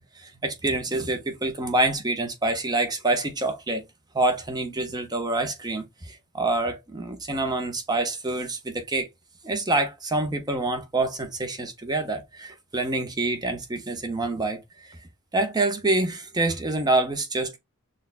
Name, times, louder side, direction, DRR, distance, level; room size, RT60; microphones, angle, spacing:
voice 1, 0.2-3.8 4.1-9.1 9.4-15.0 15.3-17.6, right 2 dB, 20° right, 0.7 m, -26 dB
6.3 x 2.2 x 2.4 m
head